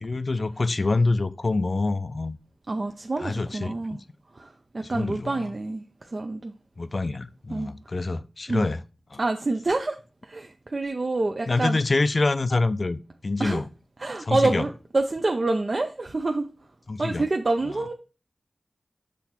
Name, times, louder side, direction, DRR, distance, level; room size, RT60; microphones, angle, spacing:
voice 1, 0.0-2.4 3.2-4.0 4.8-5.5 6.8-8.8 9.1-9.2 11.5-13.7 14.2-14.6 16.9-17.3, left 3 dB, 55° left, 0.5 m, -26 dB
voice 2, 2.7-4.0 4.3-6.5 7.5-7.7 8.5-8.7 9.2-10.0 10.2-11.8 13.4-13.6 14.0-16.5 17.0-17.9, right 2 dB, 55° right, 0.6 m, -27 dB
6.2 x 3.3 x 5.8 m
cardioid pair, 45°, 0 cm